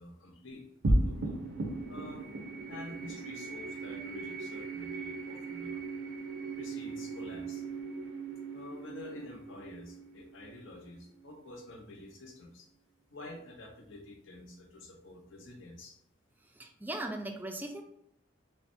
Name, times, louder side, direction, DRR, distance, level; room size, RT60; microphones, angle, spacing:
voice 1, 0.0-1.4 1.9-2.3 2.7-5.8 6.4-7.6 8.5-12.7 13.1-16.0, left 2 dB, 75° left, 0 dB, 0.9 m, -48 dB
sound 1, 0.8-11.5, right 2 dB, 80° right, 0.7 m, -36 dB
voice 2, 16.4-17.8, right 1 dB, 10° right, 4 dB, 0.4 m, -39 dB
5.7 x 2.2 x 2.7 m, 0.71 s
head